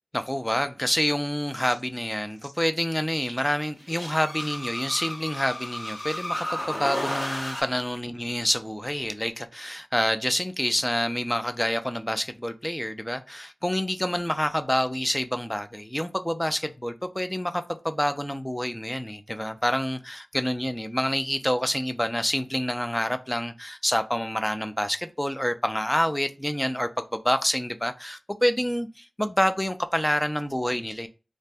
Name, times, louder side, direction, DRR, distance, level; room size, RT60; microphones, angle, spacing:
voice 1, 0.1-31.1, equal, 10° left, 0.3 m, -27 dB
sound 1, 1.5-1.8 2.4-2.5 3.2-3.4 3.8-7.6, left 1 dB, 35° left, 1.2 m, -33 dB
2.5 x 2.1 x 3.4 m
wide cardioid pair, 70°, 0 cm